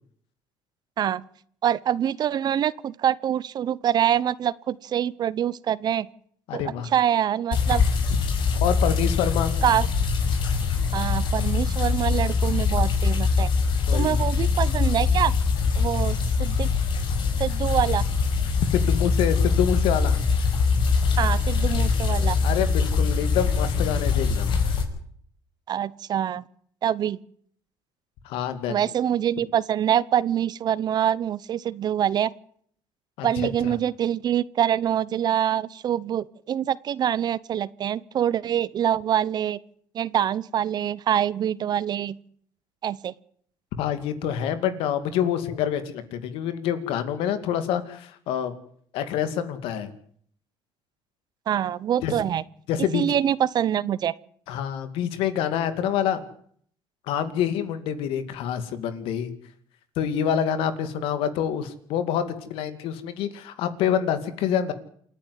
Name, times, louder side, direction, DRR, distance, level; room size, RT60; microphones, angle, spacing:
voice 1, 1.6-6.1 6.5-7.8 9.6-9.9 10.9-13.5 13.9-15.3 15.8-16.7 17.4-18.0 21.2-22.4 25.7-26.4 26.8-27.2 28.7-32.3 33.2-39.6 39.9-42.2 42.8-43.1 51.5-52.4 52.9-54.1, right 10 dB, 50° right, 20 dB, 0.9 m, -25 dB
voice 2, 6.5-6.9 8.6-9.5 13.9-14.2 18.7-20.2 22.4-24.5 28.2-28.8 33.2-33.3 33.6-33.8 43.8-48.5 48.9-49.9 52.0-52.1 52.7-53.0 54.5-56.2 57.1-59.3 60.0-64.7, left 9 dB, 80° left, 11 dB, 2.4 m, -26 dB
sound 1, 7.5-24.8, left 5 dB, 60° left, 5.3 m, -23 dB
28.0 x 10.5 x 9.6 m, 0.62 s
cardioid pair, 115°, 9 cm